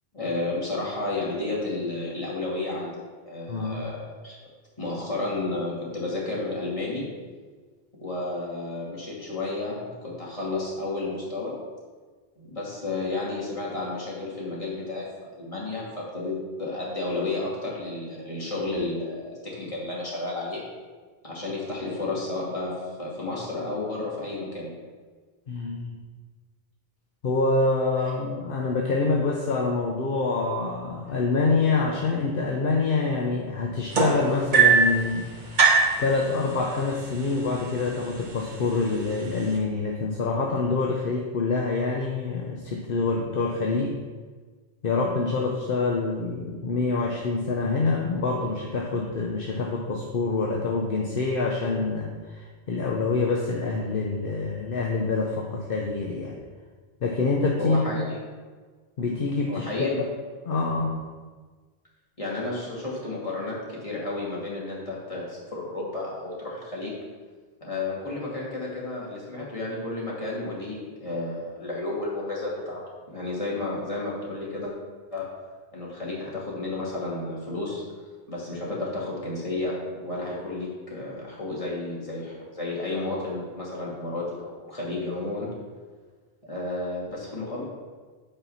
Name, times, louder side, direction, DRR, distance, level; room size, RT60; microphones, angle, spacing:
voice 1, 0.1-2.9 3.3-4.4 4.8-7.1 7.9-11.5 12.4-20.7 21.2-24.7 57.6-58.2 59.5-60.0 62.2-66.9 67.6-72.8 73.1-74.7 75.1-75.3 75.7-77.8 78.3-85.5 86.4-87.6, left 2 dB, 35° left, -5 dB, 2.3 m, -32 dB
voice 2, 3.5-3.8 25.5-26.0 27.2-35.3 36.0-44.0 44.8-56.4 57.0-57.8 59.0-59.9 60.4-60.9, left 3 dB, 65° left, 0 dB, 1.0 m, -26 dB
sound 1, 33.9-35.0 35.6-36.0 37.0-37.1 37.5-37.9 38.6-38.7, right 5 dB, 50° right, 1.2 m, -18 dB
8.8 x 4.5 x 5.6 m, 1.4 s
omnidirectional pair, 1.0 m